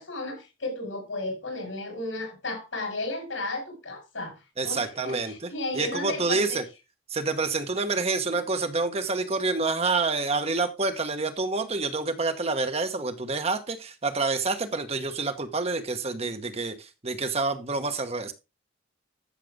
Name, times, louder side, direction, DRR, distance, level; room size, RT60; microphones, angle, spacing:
voice 1, 0.0-4.4 4.6-6.6, left 2 dB, 80° left, 5.9 m, -34 dB
voice 2, 4.6-6.6 7.1-18.3, right 3 dB, 30° right, 1.1 m, -28 dB
13.0 x 6.6 x 3.7 m
head